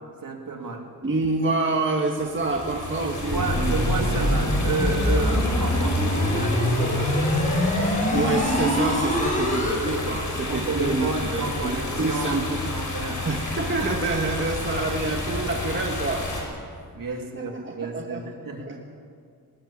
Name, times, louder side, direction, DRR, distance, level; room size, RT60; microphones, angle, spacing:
voice 1, 0.2-0.8 3.0-7.6 10.5-13.3 16.6-18.7, right 3 dB, 60° right, 2 dB, 3.2 m, -31 dB
voice 2, 1.0-4.4 8.1-12.7 13.2-16.3 17.3-18.2 18.6-18.8, right 3 dB, 30° right, 1 dB, 1.7 m, -27 dB
sound 1, 2.2-16.4, left 2 dB, 50° left, 5.9 m, -31 dB
sound 2, 3.3-9.7, left 1 dB, 20° left, 5.3 m, -24 dB
20.5 x 19.5 x 8.8 m, 2.2 s
wide cardioid pair, 135°, 37 cm